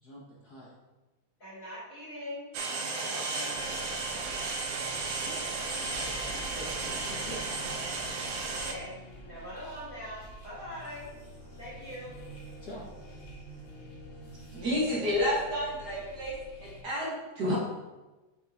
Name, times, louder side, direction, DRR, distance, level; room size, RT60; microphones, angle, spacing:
voice 1, 0.0-0.7 5.1-5.7 6.2-7.5 12.6-12.9, equal, 75° left, -5 dB, 0.8 m, -46 dB
voice 2, 1.4-2.5 3.0-3.8 8.5-8.9 9.2-11.1 11.6-12.1, equal, 30° left, -9 dB, 2.2 m, -42 dB
sound 1, 2.5-8.7, right 3 dB, 75° right, 1.6 m, -34 dB
sound 2, 3.5-16.8, equal, 45° left, 2.3 m, -47 dB
voice 3, 14.5-16.3 16.6-17.6, left 1 dB, 50° right, -4 dB, 1.4 m, -30 dB
8.0 x 4.9 x 3.5 m, 1.1 s
omnidirectional pair, 3.4 m